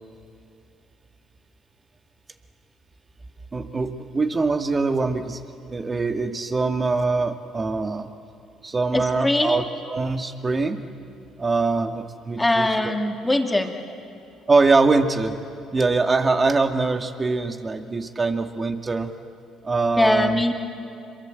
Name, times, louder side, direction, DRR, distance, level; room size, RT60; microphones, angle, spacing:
voice 1, 3.5-5.4 5.7-8.1 8.6-10.8 11.4-12.9 14.5-15.3 15.7-19.1 19.6-20.4, right 3 dB, 30° right, 6 dB, 2.2 m, -23 dB
voice 2, 8.9-9.6 12.4-13.7 20.0-20.5, left 1 dB, 15° left, 4 dB, 2.9 m, -21 dB
27.0 x 22.5 x 7.9 m, 2.8 s
hypercardioid pair, 65°, 0 cm